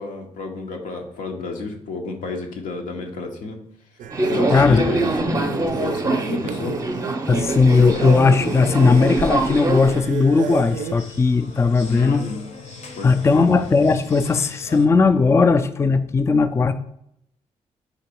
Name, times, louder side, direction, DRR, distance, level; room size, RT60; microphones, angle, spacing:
voice 1, 0.0-3.6 4.2-6.8 11.8-12.4 13.0-13.5, left 3 dB, 90° left, 3 dB, 0.8 m, -31 dB
sound 1, 4.0-10.9, right 7 dB, 75° right, 0.4 m, -31 dB
Subway metro underground, 4.1-10.0, right 2 dB, 25° right, 0.6 m, -24 dB
voice 2, 4.5-4.8 7.3-12.3 13.0-16.7, left 4 dB, 20° left, 9 dB, 0.3 m, -17 dB
sound 2, 7.3-14.9, left 3 dB, 60° left, 0.8 m, -41 dB
3.9 x 3.0 x 4.4 m, 0.74 s
cardioid pair, 70°, 13 cm